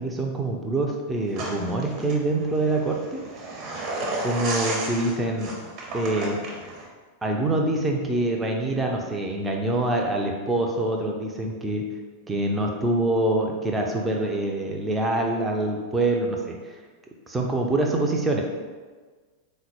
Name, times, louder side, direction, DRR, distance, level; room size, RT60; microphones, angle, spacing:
voice 1, 0.0-3.2 4.2-5.5 5.9-6.4 7.2-11.8 12.3-16.8 17.3-18.4, right 2 dB, 10° right, 0 dB, 0.4 m, -25 dB
sound 1, 1.3-6.9, right 2 dB, 45° right, 0.7 m, -33 dB
3.8 x 2.1 x 4.3 m, 1.4 s
figure-of-eight pair, 90°, 0 cm